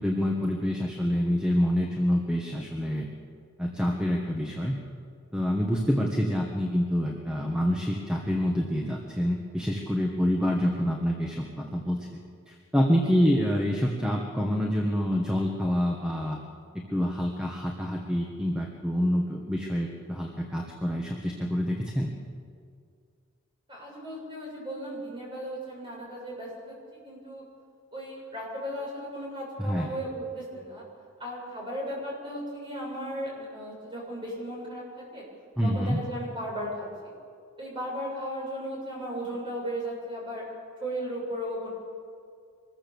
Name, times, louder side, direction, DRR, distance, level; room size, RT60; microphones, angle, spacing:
voice 1, 0.0-3.1 3.6-4.8 5.3-12.2 12.5-16.4 16.9-22.1 29.6-29.9 35.6-36.0, equal, 5° right, 0 dB, 1.5 m, -27 dB
voice 2, 23.7-27.4 27.9-30.8 31.2-35.2 35.6-37.1 37.6-40.4 40.8-41.7, equal, 20° right, -4 dB, 7.3 m, -36 dB
25.0 x 20.5 x 7.1 m, 2.2 s
head